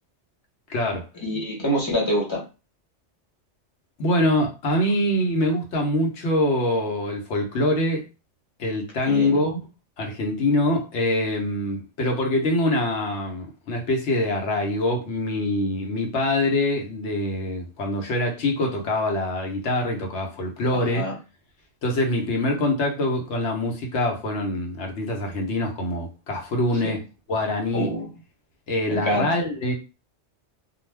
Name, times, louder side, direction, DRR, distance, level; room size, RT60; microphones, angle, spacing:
voice 1, 0.7-1.0 4.0-8.1 8.6-9.6 10.0-21.1 21.8-27.0 27.3-27.9 28.7-29.7, left 1 dB, 75° left, 1.1 m, -24 dB
voice 2, 1.2-2.4 9.1-9.4 20.7-21.2 26.8-27.0 27.7-28.1 28.9-29.3, equal, 25° left, 0.9 m, -26 dB
2.4 x 2.2 x 3.2 m
omnidirectional pair, 1.2 m